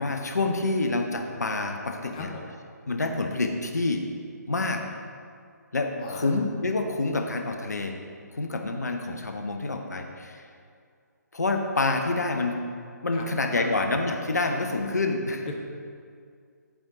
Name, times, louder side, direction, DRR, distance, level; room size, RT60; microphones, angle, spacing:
voice 1, 0.0-2.3 2.9-4.0 4.5-4.8 5.7-8.0 8.3-10.5 11.3-12.6 13.0-15.5, left 3 dB, 65° left, 4 dB, 0.9 m, -27 dB
voice 2, 6.0-6.3 13.1-13.3 13.6-13.8, left 4 dB, 25° left, 1 dB, 0.7 m, -37 dB
8.8 x 8.0 x 3.7 m, 2.2 s
figure-of-eight pair, 140°, 10 cm